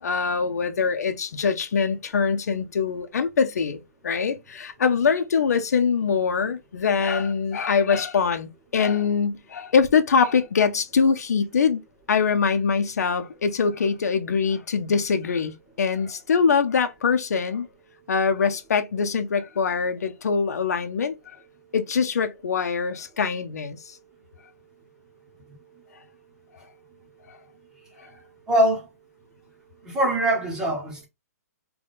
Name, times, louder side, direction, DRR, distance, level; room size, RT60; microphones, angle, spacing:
voice 1, 0.0-11.8 12.1-17.7 18.1-21.4 21.7-24.0 27.3-27.4 28.0-28.1, left 5 dB, 80° left, 0.7 m, -23 dB
voice 2, 28.5-28.9 29.8-31.1, right 1 dB, 5° right, 0.9 m, -23 dB
3.5 x 2.3 x 3.9 m
hypercardioid pair, 180°, 9 cm